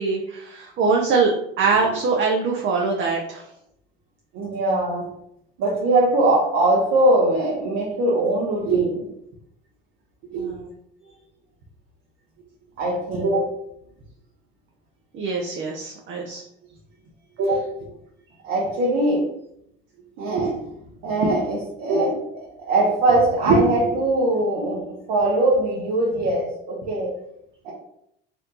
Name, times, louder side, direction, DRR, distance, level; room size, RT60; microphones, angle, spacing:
voice 1, 0.0-1.3 1.6-3.4 10.4-10.7 15.1-16.4, right 4 dB, 40° right, 0 dB, 0.7 m, -23 dB
voice 2, 4.3-5.1 5.6-9.1 10.3-10.5 12.8-13.5 17.4-17.7 18.4-19.3 20.2-20.7 21.0-22.4 22.7-27.2 27.6-27.7, right 2 dB, 60° right, -4 dB, 1.0 m, -21 dB
4.3 x 2.6 x 2.7 m, 0.75 s
hypercardioid pair, 70°, 29 cm